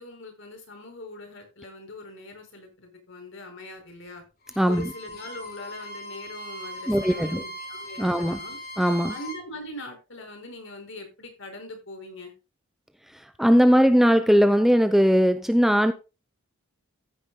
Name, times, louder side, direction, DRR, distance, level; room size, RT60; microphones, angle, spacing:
voice 1, 0.0-4.2 4.7-8.6 9.1-12.3, left 1 dB, 60° left, 5.0 m, -41 dB
Bowed string instrument, 4.4-9.4, equal, 45° left, 3.6 m, -39 dB
voice 2, 4.6-4.9 6.9-7.4 8.0-8.4 8.8-9.1 13.1-15.9, equal, ahead, 0.6 m, -19 dB
15.0 x 9.4 x 2.2 m
head